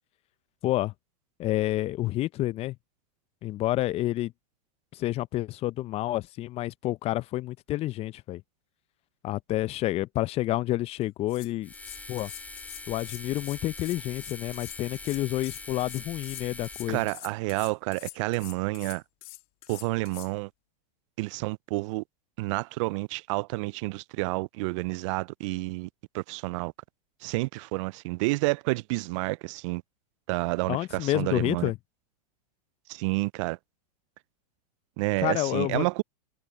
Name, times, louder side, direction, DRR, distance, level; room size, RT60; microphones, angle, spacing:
voice 1, 0.6-0.9 1.4-2.8 3.4-4.3 4.9-8.4 9.2-11.7 12.1-12.3 12.9-17.0 30.7-31.8 35.2-35.9, left 16 dB, 30° left, 0.6 m, -29 dB
sound 1, 11.0-11.1 11.3-20.3, left 22 dB, 45° left, 2.8 m, -45 dB
sound 2, 11.6-17.1, left 2 dB, 5° left, 2.9 m, -43 dB
voice 2, 16.9-19.0 19.7-20.5 21.2-22.0 22.4-25.9 26.1-26.7 27.2-29.8 30.3-31.7 32.9-33.6 35.0-36.0, right 24 dB, 50° right, 0.4 m, -29 dB
hypercardioid pair, 115°, 21 cm